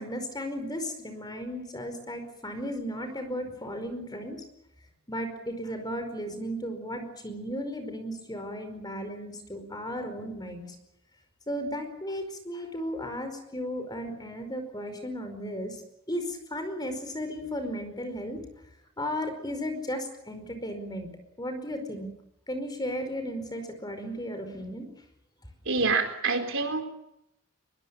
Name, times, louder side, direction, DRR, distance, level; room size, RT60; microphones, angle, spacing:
voice 1, 0.0-4.4 5.1-10.6 11.5-15.8 16.1-18.4 19.0-21.1 21.4-22.1 22.5-24.9, equal, 20° left, 7 dB, 4.9 m, -35 dB
voice 2, 25.7-26.8, right 4 dB, 60° right, 5 dB, 4.3 m, -26 dB
23.0 x 22.5 x 8.7 m, 0.78 s
head